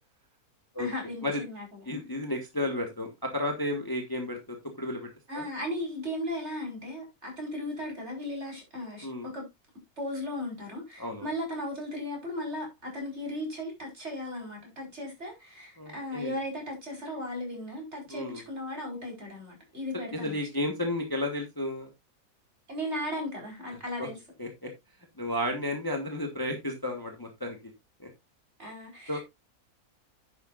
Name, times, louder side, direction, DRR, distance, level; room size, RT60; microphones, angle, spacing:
voice 1, 0.8-2.0 5.3-9.1 9.3-9.5 10.0-20.4 22.7-24.2 28.6-29.2, left 1 dB, 45° right, 5.3 m, -36 dB
voice 2, 1.9-5.1 5.3-5.4 9.0-9.3 11.0-11.3 15.8-16.4 18.1-18.4 20.1-21.9 24.0-24.1 24.4-24.7 25.2-27.6 28.0-28.1 29.1-29.2, left 1 dB, 15° left, 1.5 m, -32 dB
10.5 x 8.6 x 2.5 m
omnidirectional pair, 1.7 m